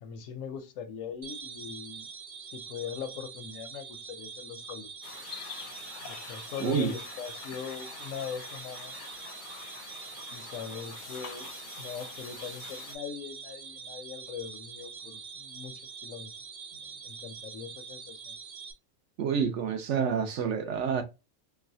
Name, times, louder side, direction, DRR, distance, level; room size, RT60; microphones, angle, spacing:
voice 1, 0.0-2.1 2.4-4.9 6.0-8.9 10.3-11.5 11.8-16.3 16.7-18.4, left 7 dB, 85° left, 1.0 m, -41 dB
sound 1, 1.2-18.7, right 6 dB, 45° right, 0.5 m, -44 dB
sound 2, 5.0-13.0, left 6 dB, 55° left, 0.6 m, -45 dB
voice 2, 6.6-6.9 19.2-21.0, right 7 dB, 70° right, 0.9 m, -28 dB
4.0 x 2.3 x 2.6 m
omnidirectional pair, 1.3 m